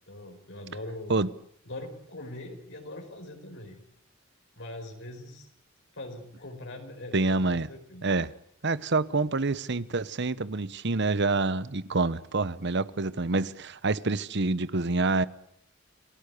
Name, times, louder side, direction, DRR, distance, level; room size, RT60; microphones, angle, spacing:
voice 1, 0.1-1.2 1.7-3.8 4.6-5.5 5.9-8.1, left 1 dB, 60° left, 4.6 m, -42 dB
voice 2, 7.1-7.7 8.0-8.3 8.6-15.2, right 3 dB, 55° right, 1.0 m, -27 dB
29.0 x 18.5 x 8.3 m
head